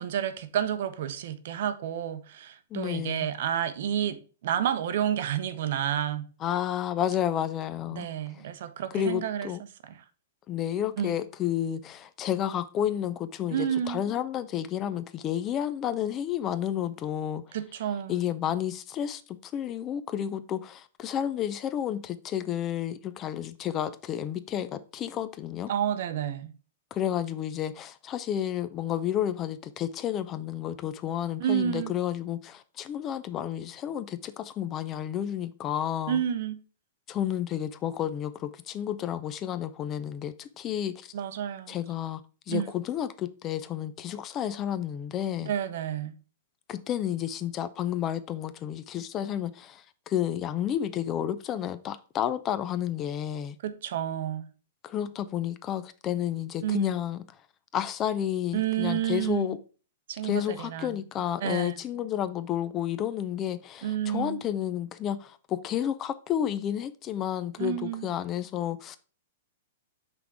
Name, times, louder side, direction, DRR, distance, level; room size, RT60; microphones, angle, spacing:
voice 1, 0.0-6.2 7.9-9.5 9.8-9.9 11.0-11.2 13.5-14.0 17.5-18.1 25.7-26.5 31.4-31.9 36.1-36.6 41.1-41.8 42.5-42.7 45.5-46.2 53.6-54.5 56.6-56.9 58.5-59.6 60.1-61.0 61.4-61.8 63.8-64.4 67.6-68.1, right 10 dB, 60° right, 0.7 m, -30 dB
voice 2, 2.7-3.3 6.4-8.1 8.3-8.4 8.9-9.6 10.5-17.6 18.1-25.7 26.9-36.2 37.1-41.1 41.7-42.2 42.5-45.5 46.7-53.6 54.8-57.2 57.7-59.6 60.2-69.0, left 10 dB, 25° left, 0.4 m, -31 dB
5.9 x 3.6 x 4.7 m
hypercardioid pair, 155°, 0 cm